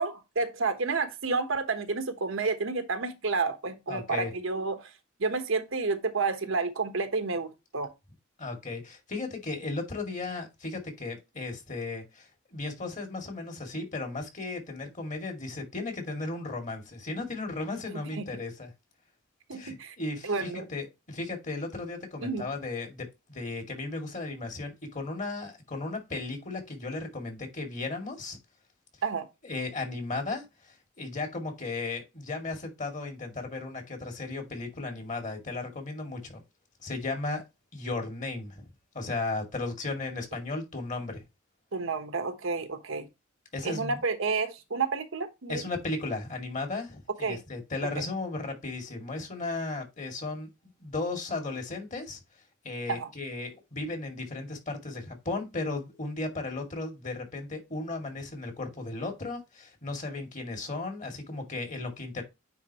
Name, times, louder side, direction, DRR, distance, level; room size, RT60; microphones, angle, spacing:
voice 1, 0.0-4.9 5.2-7.9 18.2-18.3 19.5-20.0 20.2-20.6 22.2-22.4 29.0-29.3 41.7-43.1 43.6-45.6 47.2-47.4 48.0-48.1 52.9-53.1, right 4 dB, 70° right, 1.1 m, -30 dB
voice 2, 3.9-4.3 8.4-18.7 19.5-28.4 29.4-36.4 36.8-37.4 37.7-38.7 38.9-41.2 43.5-44.0 45.5-50.5 50.8-52.2 52.6-62.2, left 3 dB, 40° left, 2.3 m, -35 dB
9.4 x 4.0 x 2.9 m
head